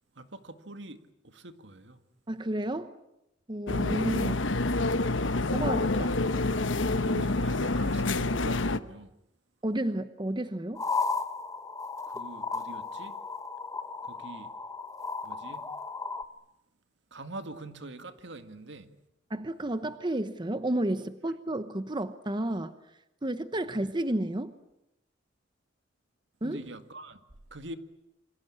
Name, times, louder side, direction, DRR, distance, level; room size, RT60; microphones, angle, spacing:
voice 1, 0.2-2.0 6.8-9.1 12.1-13.2 14.0-14.5 15.2-15.7 17.1-18.9 26.4-27.2 27.5-27.8, right 2 dB, 65° right, 2.0 m, -44 dB
voice 2, 2.3-2.9 3.5-4.4 5.5-6.2 7.1-7.2 9.6-10.8 19.3-22.7 23.2-24.5 26.4-26.6, right 1 dB, 25° right, 1.0 m, -31 dB
sound 1, 3.7-8.8, left 2 dB, 85° left, 1.1 m, -27 dB
sound 2, 10.8-16.2, left 4 dB, 15° left, 1.2 m, -35 dB
27.5 x 25.0 x 8.7 m
head